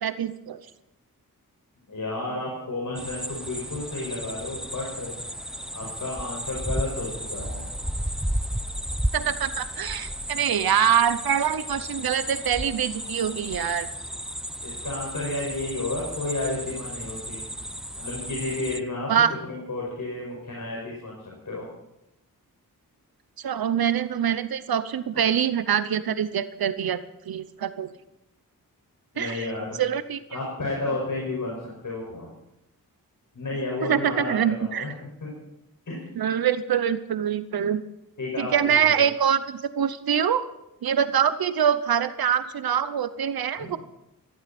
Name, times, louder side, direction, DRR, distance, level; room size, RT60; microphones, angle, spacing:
voice 1, 0.0-0.6 9.1-13.9 19.1-19.3 23.4-27.0 27.3-27.9 29.2-29.5 29.8-30.2 33.8-34.9 36.2-37.8 38.4-40.4 40.8-43.8, right 8 dB, 85° right, 13 dB, 0.8 m, -24 dB
voice 2, 1.9-5.2 5.7-7.8 10.3-10.4 14.6-17.4 18.0-19.1 19.5-21.2 21.5-21.7 29.1-29.8 30.3-31.6 31.8-32.3 33.3-34.9 35.2-35.3 35.9-36.0 38.2-39.0 43.6-43.7, left 2 dB, 60° left, -3 dB, 5.7 m, -32 dB
sound 1, 3.0-18.8, equal, ahead, 0.6 m, -33 dB
19.0 x 15.0 x 4.3 m, 0.88 s
wide cardioid pair, 75°, 36 cm